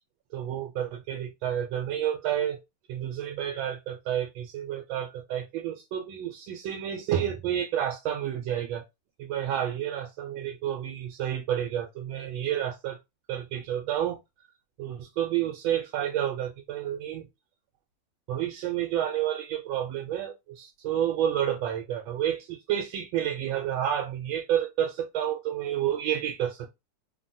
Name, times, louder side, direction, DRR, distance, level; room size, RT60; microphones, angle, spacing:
voice 1, 0.3-2.6 2.9-8.8 9.2-13.0 13.3-14.2 14.8-17.3 18.3-26.7, right 10 dB, 85° right, 1.3 m, -30 dB
3.4 x 2.2 x 2.6 m
omnidirectional pair, 2.1 m